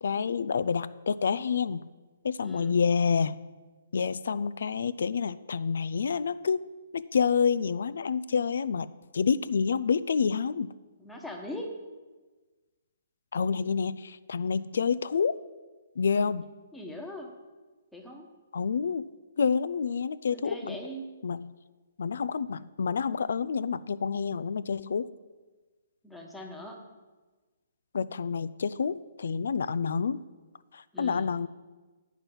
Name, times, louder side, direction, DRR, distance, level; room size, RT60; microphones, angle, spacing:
voice 1, 0.0-1.9 2.2-3.4 3.9-6.6 6.9-10.7 13.3-15.3 16.0-16.5 18.5-19.1 19.4-20.8 21.2-21.5 22.0-25.1 27.9-30.2 30.7-31.5, left 6 dB, 75° left, 16 dB, 0.4 m, -28 dB
voice 2, 2.4-2.8 11.0-11.8 16.7-17.3 17.9-18.3 20.3-21.1 26.0-26.8 30.9-31.3, equal, 5° left, 0 dB, 1.2 m, -40 dB
9.0 x 5.8 x 6.9 m, 1.3 s
hypercardioid pair, 150°, 0 cm